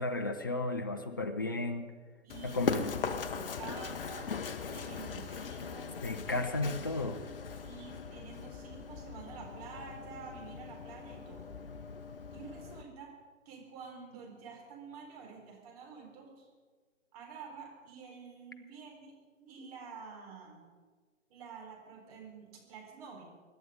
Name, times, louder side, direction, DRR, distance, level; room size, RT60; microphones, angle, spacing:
voice 1, 0.0-1.9 2.4-2.9 6.0-7.2, left 2 dB, 15° left, 7 dB, 0.5 m, -33 dB
voice 2, 2.2-2.8 3.3-4.4 4.7-6.0 7.6-11.5 12.3-13.2 13.5-16.5 17.1-20.7 21.3-23.2, right 5 dB, 30° right, 0 dB, 4.1 m, -49 dB
Run, 2.3-12.8, left 5 dB, 45° left, 1.0 m, -40 dB
25.5 x 11.0 x 5.1 m, 1.5 s
figure-of-eight pair, 145°, 40 cm